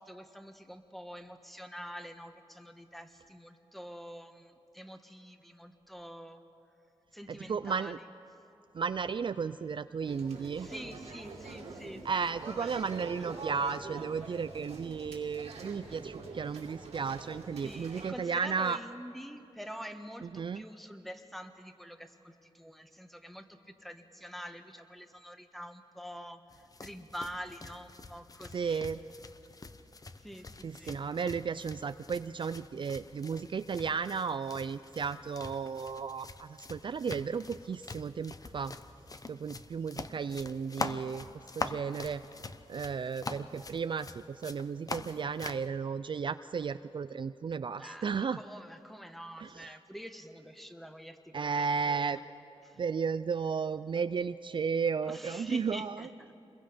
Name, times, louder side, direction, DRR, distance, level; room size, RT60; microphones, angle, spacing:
voice 1, 0.0-6.4 7.1-8.1 10.4-12.9 13.2-13.3 14.3-14.4 17.6-28.8 30.2-31.0 47.8-52.2 52.6-52.8 55.0-56.3, equal, ahead, 7 dB, 1.3 m, -46 dB
voice 2, 7.3-8.0 8.7-10.7 12.1-18.8 20.3-20.6 28.5-29.0 30.6-38.7 39.3-41.3 41.6-42.2 42.7-48.4 49.4-49.6 51.3-52.2 52.8-56.0, right 6 dB, 50° right, 12 dB, 0.4 m, -34 dB
sound 1, 10.0-18.1, right 3 dB, 90° right, 2.4 m, -45 dB
sound 2, 26.5-45.7, left 3 dB, 35° left, 0.9 m, -44 dB
26.5 x 21.5 x 5.1 m, 2.7 s
cardioid pair, 80°, 11 cm